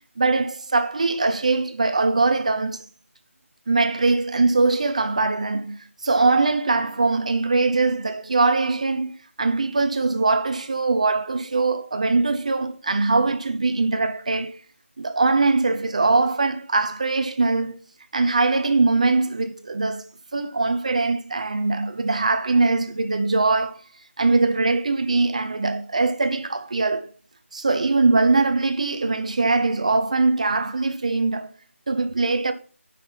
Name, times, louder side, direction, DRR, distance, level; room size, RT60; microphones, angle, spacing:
voice 1, 0.2-2.8 3.7-14.6 15.0-17.8 18.1-20.0 20.3-23.8 24.2-27.1 27.5-31.5 31.9-32.5, right 3 dB, 30° right, 0.6 m, -22 dB
9.7 x 5.8 x 5.8 m
figure-of-eight pair, 175°, 7 cm